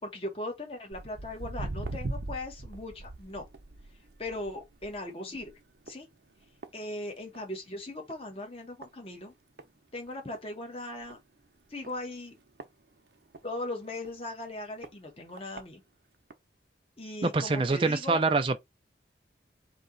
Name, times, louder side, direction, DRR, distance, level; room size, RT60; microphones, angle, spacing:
voice 1, 0.0-3.5 4.2-5.5 5.9-6.1 6.7-9.3 9.9-11.2 11.7-12.4 13.4-15.8 17.0-18.2, left 1 dB, 30° left, 1.2 m, -39 dB
Walk footsteps, 0.9-7.6 7.9-8.3 8.8-8.9 9.6-9.7 10.1-10.2 10.3-10.4 11.0-11.2 11.8-13.4 14.0-14.1 14.8-14.9 15.4-15.6 16.3-16.4, right 2 dB, 70° right, 0.7 m, -40 dB
voice 2, 17.2-18.6, right 3 dB, 30° right, 0.4 m, -25 dB
4.3 x 2.9 x 3.9 m
head